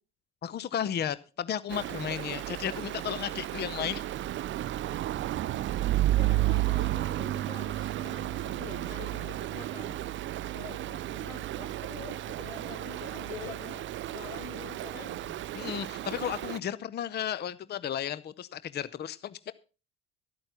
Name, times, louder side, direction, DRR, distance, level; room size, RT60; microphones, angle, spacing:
voice 1, 0.4-4.0 15.5-19.5, left 9 dB, 30° left, 17 dB, 0.7 m, -34 dB
Stream, 1.7-16.6, right 14 dB, 40° right, 0.5 m, -32 dB
voice 2, 6.1-10.0 10.5-13.8 14.1-15.2, left 9 dB, 85° left, 8 dB, 1.3 m, -46 dB
13.0 x 8.8 x 5.7 m, 0.35 s
hypercardioid pair, 70°, 31 cm